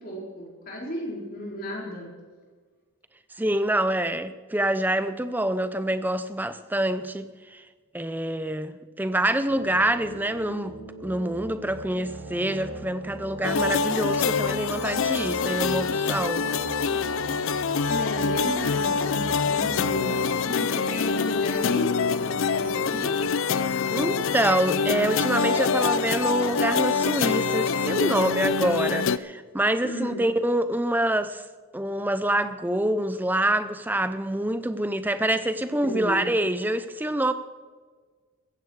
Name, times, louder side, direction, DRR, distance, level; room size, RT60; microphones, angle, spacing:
voice 1, 0.0-2.1 17.9-23.2 29.8-30.2 35.8-36.2, equal, 40° left, 4.5 m, -34 dB
voice 2, 3.4-7.6 7.9-16.5 23.9-31.4 31.7-37.3, right 1 dB, 10° right, 0.6 m, -26 dB
sound 1, 9.5-20.3, right 2 dB, 75° right, 4.1 m, -40 dB
sound 2, 13.4-29.2, left 5 dB, 60° left, 0.5 m, -25 dB
15.5 x 15.0 x 4.8 m
head